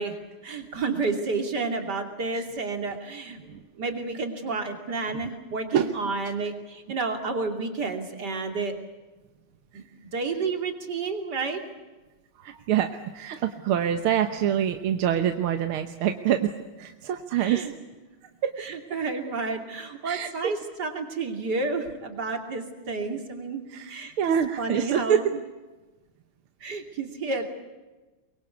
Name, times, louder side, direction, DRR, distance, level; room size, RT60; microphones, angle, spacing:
voice 1, 0.0-3.4 3.8-8.7 9.7-9.8 10.1-11.6 17.4-17.7 18.6-24.1 24.6-25.3 26.6-27.5, right 4 dB, 50° right, 4 dB, 3.4 m, -30 dB
voice 2, 5.7-6.2 9.7-9.8 12.4-17.7 18.4-18.7 20.0-20.5 23.7-25.4, right 9 dB, 80° right, 7 dB, 1.9 m, -26 dB
23.0 x 23.0 x 8.3 m, 1.2 s
omnidirectional pair, 2.3 m